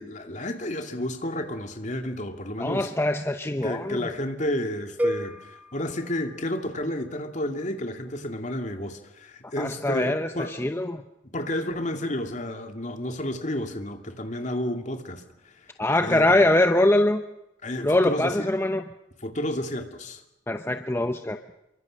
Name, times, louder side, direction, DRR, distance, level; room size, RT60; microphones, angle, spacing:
voice 1, 0.0-2.9 3.6-10.6 11.3-15.2 16.0-16.4 17.6-18.5 19.2-20.2, left 1 dB, 40° left, 2.5 m, -31 dB
voice 2, 2.6-4.1 9.6-11.0 15.8-17.2 17.8-18.8 20.5-21.4, left 1 dB, 15° left, 0.8 m, -23 dB
sound 1, 5.0-7.1, equal, 10° right, 1.4 m, -32 dB
28.0 x 23.5 x 6.5 m
head